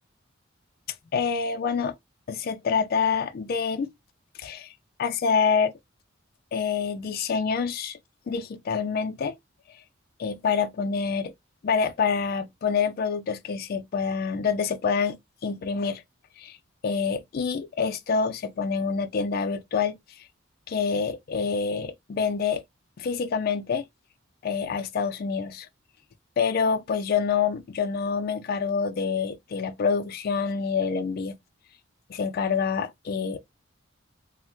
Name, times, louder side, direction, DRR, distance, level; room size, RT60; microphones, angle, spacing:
voice 1, 1.1-1.9 2.3-3.9 4.4-4.7 5.0-5.7 6.5-8.0 8.3-9.3 10.2-11.3 11.6-16.0 16.4-16.6 16.8-20.2 20.7-22.6 23.0-23.8 24.4-25.7 26.4-31.4 32.1-33.4, left 5 dB, 45° left, 0.3 m, -27 dB
2.9 x 2.0 x 3.1 m
head